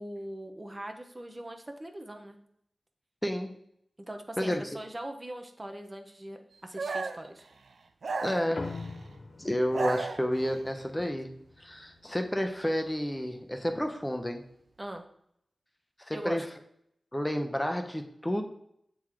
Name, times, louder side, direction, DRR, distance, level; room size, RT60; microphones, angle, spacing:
voice 1, 0.0-2.4 4.1-7.5 14.8-15.1 16.1-16.4, right 1 dB, 30° right, 5 dB, 0.9 m, -41 dB
voice 2, 3.2-3.5 4.4-4.7 8.2-8.6 9.4-11.3 11.6-14.4 16.0-16.4 17.1-18.4, equal, 15° left, 5 dB, 0.8 m, -30 dB
sound 1, 6.8-7.3 8.0-9.0 9.5-10.6, right 3 dB, 90° right, 0.5 m, -34 dB
sound 2, 8.5-13.3, left 3 dB, 70° left, 0.8 m, -45 dB
7.2 x 3.9 x 4.7 m, 0.73 s
wide cardioid pair, 55°, 0 cm